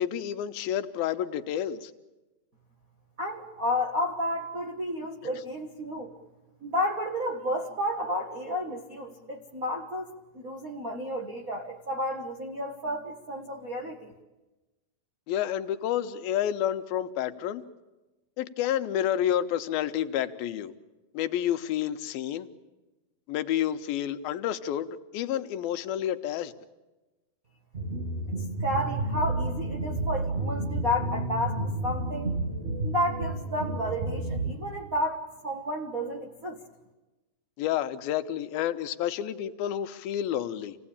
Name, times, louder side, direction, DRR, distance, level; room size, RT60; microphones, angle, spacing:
voice 1, 0.0-1.9 15.3-17.6 18.4-20.7 21.1-22.5 23.3-26.5 37.6-40.8, left 11 dB, 85° left, 9 dB, 2.8 m, -29 dB
voice 2, 3.2-6.1 6.6-14.1 28.6-32.4 32.8-36.6, left 1 dB, 55° right, -2 dB, 0.9 m, -31 dB
sound 1, 27.7-34.5, right 2 dB, 85° right, 0.6 m, -31 dB
27.5 x 18.0 x 8.7 m, 1.1 s
omnidirectional pair, 4.2 m